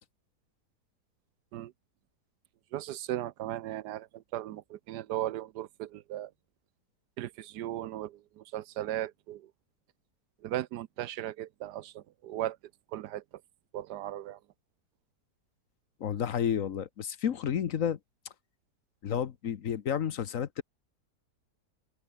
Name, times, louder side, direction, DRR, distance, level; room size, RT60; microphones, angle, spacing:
voice 1, 2.7-6.3 7.2-9.5 10.4-12.6 12.9-13.2 13.7-14.4, right 13 dB, 85° right, 1.3 m, -37 dB
voice 2, 16.0-18.0 19.0-20.6, left 8 dB, 55° left, 1.3 m, -31 dB
omnidirectional pair, 1.8 m